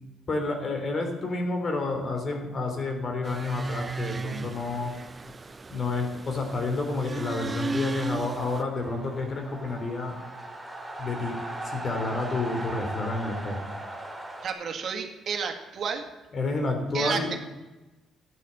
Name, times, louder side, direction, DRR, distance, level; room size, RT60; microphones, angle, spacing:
voice 1, 0.3-4.9 5.7-10.2 11.0-11.4 11.6-13.7 16.3-17.4, left 3 dB, 45° left, 4 dB, 3.6 m, -30 dB
sound 1, 3.2-8.6, right 3 dB, 30° right, 0.7 m, -35 dB
sound 2, 6.8-14.5, right 1 dB, 5° right, 2.6 m, -39 dB
voice 2, 14.4-16.1 16.9-17.4, right 6 dB, 60° right, 4 dB, 2.2 m, -31 dB
13.5 x 9.8 x 7.8 m, 1.1 s
cardioid pair, 90°, 0 cm